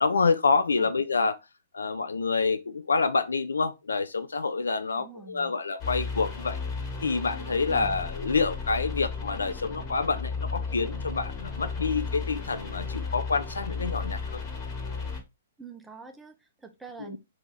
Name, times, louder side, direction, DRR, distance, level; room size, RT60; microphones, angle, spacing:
voice 1, 0.0-1.4 1.7-6.6 7.0-14.4 17.1-17.2, left 4 dB, 80° left, 0.3 m, -27 dB
voice 2, 4.9-5.5 7.7-8.0 15.6-17.2, right 5 dB, 5° right, 0.5 m, -45 dB
sound 1, 5.8-15.2, left 4 dB, 30° left, 1.2 m, -34 dB
2.9 x 2.5 x 3.8 m
hypercardioid pair, 120°, 0 cm